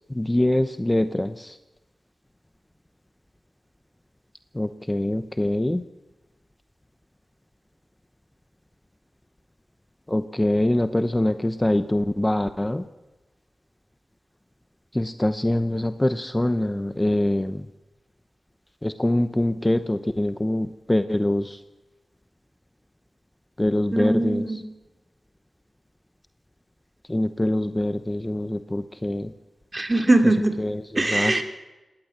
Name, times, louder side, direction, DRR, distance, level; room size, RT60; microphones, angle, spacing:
voice 1, 0.1-1.6 4.5-5.8 10.1-12.8 14.9-17.6 18.8-21.6 23.6-24.6 27.1-29.3 30.6-31.4, left 1 dB, 15° left, 11 dB, 0.9 m, -24 dB
voice 2, 23.9-24.6 29.7-30.5 30.9-31.4, right 2 dB, 30° right, 5 dB, 3.2 m, -21 dB
20.0 x 17.5 x 7.5 m, 1.1 s
cardioid pair, 60°, 0 cm